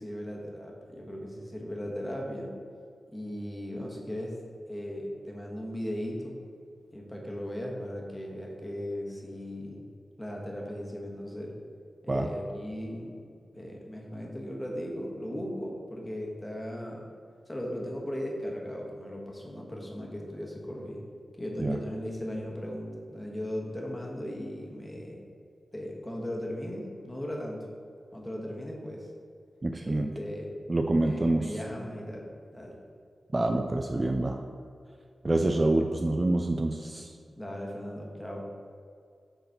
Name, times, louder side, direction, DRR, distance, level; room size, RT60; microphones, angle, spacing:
voice 1, 0.0-2.5 3.1-4.4 4.7-6.4 6.9-9.8 10.2-11.5 12.0-13.2 13.5-17.1 17.5-21.0 21.4-25.2 25.7-27.6 28.1-29.1 29.8-30.5 31.0-32.3 32.5-32.8 37.4-38.5, equal, 10° left, -1 dB, 1.2 m, -37 dB
voice 2, 29.6-30.1 30.7-31.5 33.3-34.4 35.2-37.1, right 2 dB, 25° right, 4 dB, 0.4 m, -26 dB
6.7 x 4.0 x 5.8 m, 2.2 s
wide cardioid pair, 115°, 0 cm